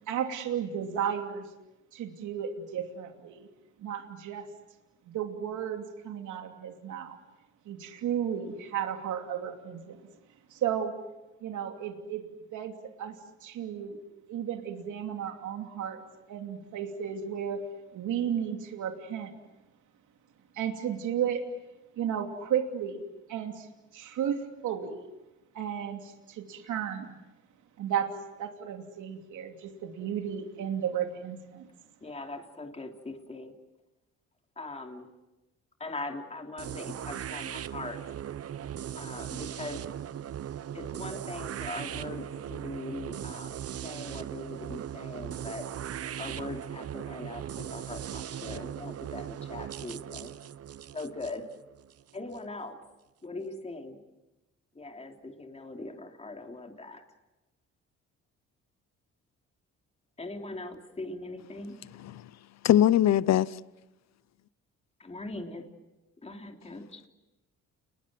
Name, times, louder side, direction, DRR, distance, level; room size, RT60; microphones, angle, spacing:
voice 1, 0.1-1.5 1.9-3.5 3.8-4.5 5.1-7.2 7.6-10.0 10.5-10.9 11.4-12.7 13.0-13.2 13.4-14.0 14.3-16.0 16.3-17.6 17.9-19.3 20.5-21.4 22.0-23.0 23.3-23.7 23.9-25.0 25.5-27.2 27.8-28.1 28.4-31.7, right 9 dB, 80° right, 4 dB, 2.9 m, -33 dB
voice 2, 32.0-33.5 34.5-35.1 35.8-38.1 38.9-39.8 40.7-43.6 43.8-45.7 46.2-50.3 50.9-51.5 52.1-52.8 53.2-54.0 54.7-57.0 60.2-61.8 65.0-65.6 66.2-67.0, left 2 dB, 20° left, 3 dB, 3.3 m, -41 dB
sound 1, 36.6-52.4, right 10 dB, 55° right, 0.9 m, -39 dB
voice 3, 62.6-63.5, left 11 dB, 60° left, 19 dB, 0.8 m, -21 dB
30.0 x 21.5 x 7.8 m, 1.0 s
cardioid pair, 90°, 30 cm